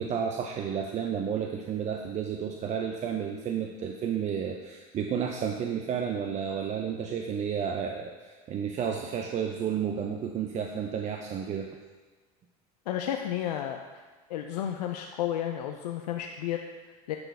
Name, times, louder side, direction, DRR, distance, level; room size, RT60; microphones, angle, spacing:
voice 1, 0.0-11.7, right 7 dB, 35° right, 3 dB, 0.6 m, -31 dB
voice 2, 12.9-17.2, left 10 dB, 90° left, 4 dB, 0.5 m, -33 dB
10.5 x 4.0 x 3.4 m, 1.3 s
hypercardioid pair, 95°, 20 cm